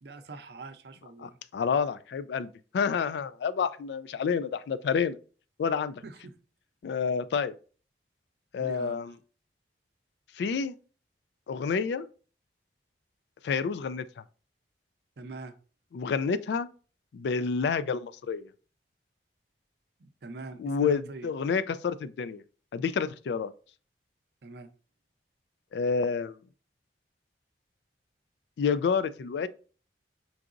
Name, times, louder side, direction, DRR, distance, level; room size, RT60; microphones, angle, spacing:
voice 1, 0.0-1.4 6.0-6.3 8.6-9.2 15.2-15.5 20.0-21.3 24.4-24.7, right 3 dB, 65° right, 0.6 m, -43 dB
voice 2, 1.2-5.2 5.6-6.0 6.8-7.5 8.5-9.1 10.4-10.7 11.5-12.1 13.4-14.0 15.9-16.7 17.1-18.5 20.6-22.4 22.7-23.5 25.7-26.4 28.6-29.5, left 6 dB, 75° left, 0.3 m, -29 dB
4.6 x 3.8 x 2.5 m
head